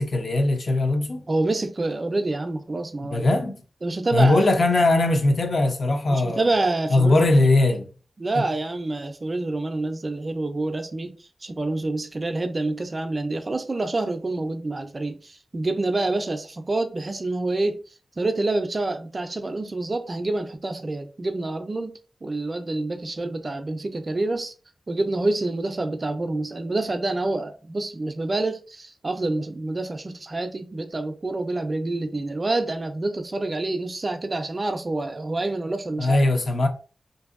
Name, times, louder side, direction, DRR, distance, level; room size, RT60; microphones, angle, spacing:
voice 1, 0.0-1.2 3.1-3.6 4.1-6.4 6.9-7.9 8.3-8.4 36.0-36.7, left 2 dB, 60° left, 0.5 m, -20 dB
voice 2, 1.3-3.3 3.8-4.5 6.1-7.1 8.2-11.1 11.4-17.8 18.2-21.9 22.2-24.5 24.9-36.3, right 2 dB, 40° right, 0.4 m, -27 dB
2.6 x 2.6 x 2.4 m
wide cardioid pair, 90°, 0 cm